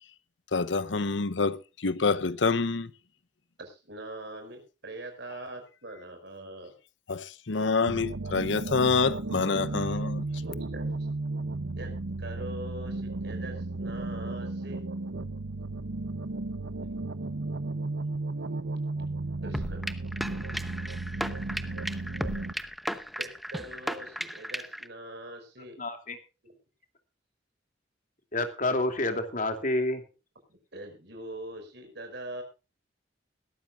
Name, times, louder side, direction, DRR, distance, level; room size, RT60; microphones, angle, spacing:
voice 1, 0.5-2.9 7.1-10.3, left 4 dB, 85° left, 0.9 m, -27 dB
voice 2, 3.6-6.8 10.5-11.1 11.8-14.8 19.4-19.8 23.2-25.8 26.4-26.6 30.5-32.4, right 1 dB, 65° right, 5.8 m, -42 dB
sound 1, 7.9-22.5, right 2 dB, 80° right, 0.9 m, -34 dB
sound 2, 19.5-24.9, equal, ahead, 0.9 m, -35 dB
voice 3, 25.8-26.2 28.3-30.0, left 2 dB, 45° left, 2.8 m, -28 dB
21.5 x 12.5 x 2.5 m
head